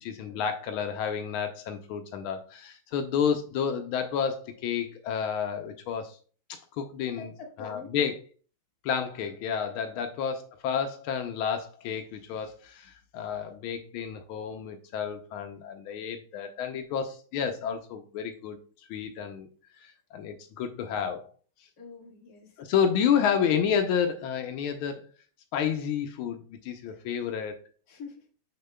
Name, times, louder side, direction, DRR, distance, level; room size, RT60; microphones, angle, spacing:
voice 1, 0.0-6.2 6.5-7.3 7.6-8.1 8.8-18.6 18.9-19.5 19.8-21.3 22.6-25.0 25.5-27.6, left 7 dB, 85° left, 6 dB, 1.5 m, -30 dB
voice 2, 7.2-8.1 9.9-10.1 21.8-22.5 26.9-27.0 27.9-28.3, left 5 dB, 50° left, 1 dB, 1.8 m, -45 dB
6.8 x 6.5 x 2.2 m, 0.40 s
omnidirectional pair, 2.2 m